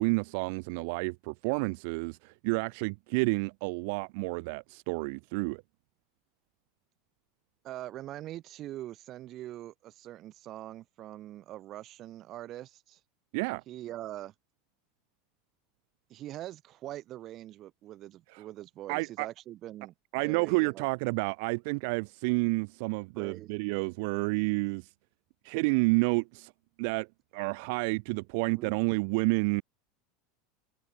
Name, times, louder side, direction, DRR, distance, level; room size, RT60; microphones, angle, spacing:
voice 1, 0.0-5.6 13.3-13.6 18.3-18.4 18.9-19.3 20.1-24.9 25.4-26.5 26.8-27.1 27.3-29.6, right 31 dB, 65° right, 0.4 m, -30 dB
voice 2, 7.6-13.0 13.7-14.3 16.1-19.9 20.2-20.9 23.1-23.6 28.1-28.2 28.5-28.8, right 14 dB, 45° right, 5.0 m, -43 dB
hypercardioid pair, 85°, 0 cm